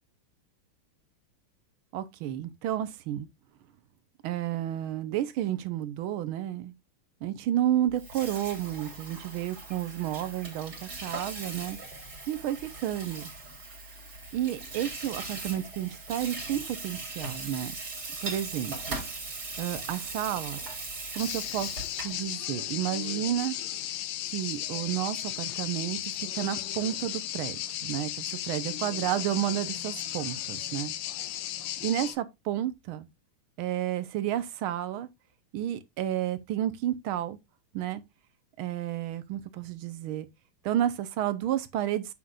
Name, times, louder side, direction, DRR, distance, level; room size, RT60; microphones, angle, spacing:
voice 1, 1.9-3.3 4.2-6.7 7.2-11.8 12.3-13.3 14.3-17.7 18.2-19.0 19.6-20.6 21.2-23.5 24.3-30.9 31.8-33.1 33.6-35.1 35.5-37.4 37.7-38.0 38.6-40.3 40.6-42.1, right 12 dB, 75° right, 1.6 m, -31 dB
Water tap faucet / Sink (filling or washing), 7.9-22.2, right 3 dB, 50° right, 2.8 m, -39 dB
sound 1, 21.2-32.2, left 12 dB, 70° left, 1.3 m, -35 dB
8.0 x 5.8 x 2.4 m
omnidirectional pair, 2.4 m